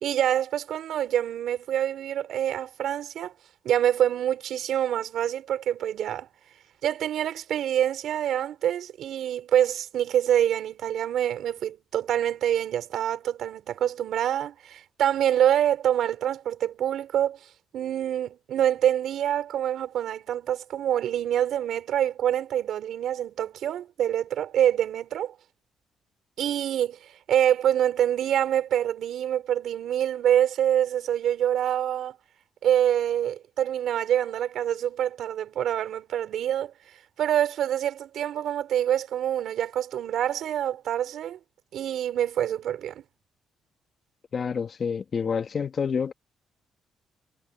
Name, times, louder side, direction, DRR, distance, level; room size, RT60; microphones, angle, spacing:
voice 1, 0.0-3.3 3.6-6.3 6.8-17.4 17.7-25.3 26.4-32.2 32.6-36.7 37.2-41.4 41.7-43.0, right 10 dB, 75° right, 4.5 m, -26 dB
voice 2, 44.3-46.1, left 6 dB, 45° left, 1.7 m, -28 dB
cardioid pair, 90°, 0 cm